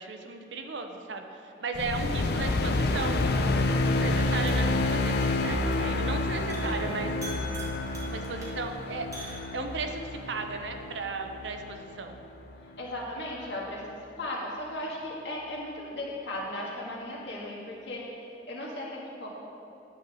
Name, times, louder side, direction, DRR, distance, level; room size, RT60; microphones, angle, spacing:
voice 1, 0.0-3.2 3.9-7.1 8.1-9.1 9.5-12.2, right 3 dB, 80° right, 5 dB, 0.7 m, -36 dB
sound 1, 1.7-12.2, left 2 dB, 60° left, 0.5 m, -29 dB
sound 2, 1.9-9.9, right 1 dB, 20° right, 1.6 m, -45 dB
voice 2, 12.6-13.9 14.2-19.3, left 1 dB, 75° left, -4 dB, 1.7 m, -36 dB
10.5 x 4.2 x 6.2 m, 2.8 s
head